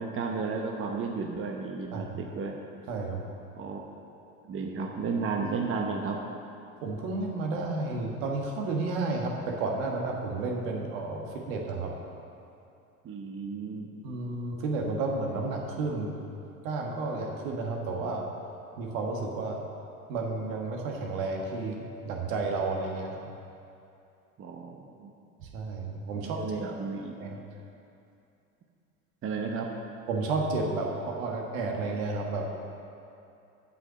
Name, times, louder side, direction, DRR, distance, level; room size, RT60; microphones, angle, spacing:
voice 1, 0.0-2.6 3.5-3.8 4.4-6.2 13.0-13.9 24.4-25.1 26.2-27.1 29.2-29.7, right 4 dB, 30° right, 1 dB, 0.9 m, -33 dB
voice 2, 2.9-3.2 6.8-11.9 14.0-16.2 16.6-18.3 18.8-19.6 20.1-23.2 25.4-26.6 27.2-27.4 30.1-32.4, right 3 dB, 65° right, 0 dB, 1.5 m, -32 dB
8.0 x 5.5 x 7.6 m, 2.7 s
hypercardioid pair, 70°, 44 cm